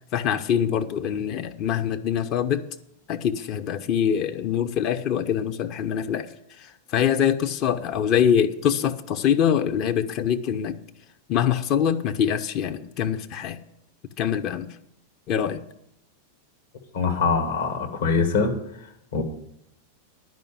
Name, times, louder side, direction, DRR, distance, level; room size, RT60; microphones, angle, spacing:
voice 1, 0.1-2.7 3.1-6.3 6.6-10.8 11.3-13.6 14.2-14.7 15.3-15.6, left 8 dB, 40° left, 9 dB, 0.6 m, -24 dB
voice 2, 16.9-18.6 19.1-19.2, left 4 dB, 60° left, 3 dB, 1.8 m, -23 dB
10.5 x 5.3 x 8.4 m, 0.77 s
figure-of-eight pair, 90°, 0 cm